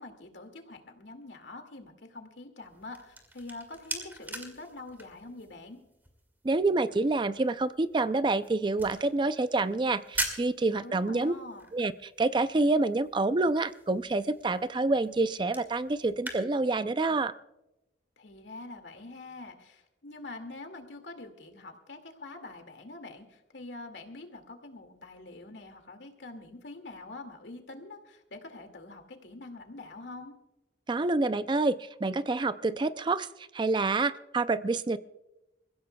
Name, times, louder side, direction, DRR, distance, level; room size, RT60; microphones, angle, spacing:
voice 1, 0.0-5.8 10.8-11.7 18.2-30.3, left 2 dB, 85° left, 5 dB, 2.3 m, -45 dB
sound 1, 2.6-16.4, right 1 dB, 10° right, 2.0 m, -43 dB
voice 2, 6.4-11.3 11.7-17.3 30.9-35.0, right 3 dB, 25° right, 13 dB, 0.4 m, -27 dB
28.0 x 15.5 x 2.3 m, 0.95 s
head